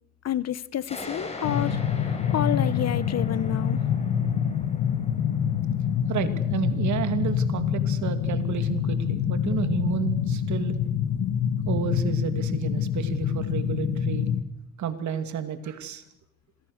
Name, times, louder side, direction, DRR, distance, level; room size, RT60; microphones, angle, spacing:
voice 1, 0.2-3.8, left 10 dB, 60° left, 17 dB, 1.0 m, -29 dB
sound 1, 0.9-8.1, left 2 dB, 20° left, 6.2 m, -42 dB
sound 2, 1.4-14.4, left 8 dB, 75° left, 2.2 m, -26 dB
voice 2, 6.1-10.8 11.7-14.3 14.8-16.0, right 9 dB, 70° right, 9 dB, 2.5 m, -31 dB
26.5 x 20.0 x 6.6 m, 0.85 s
cardioid pair, 90°, 30 cm